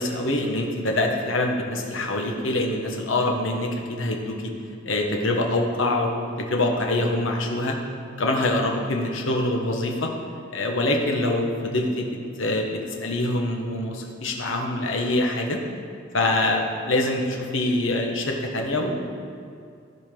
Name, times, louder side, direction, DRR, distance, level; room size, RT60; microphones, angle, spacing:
voice 1, 0.0-4.5 4.8-7.8 8.2-10.1 10.5-15.6 16.1-19.0, left 1 dB, 80° left, 1 dB, 1.1 m, -25 dB
15.0 x 5.1 x 3.7 m, 2.4 s
head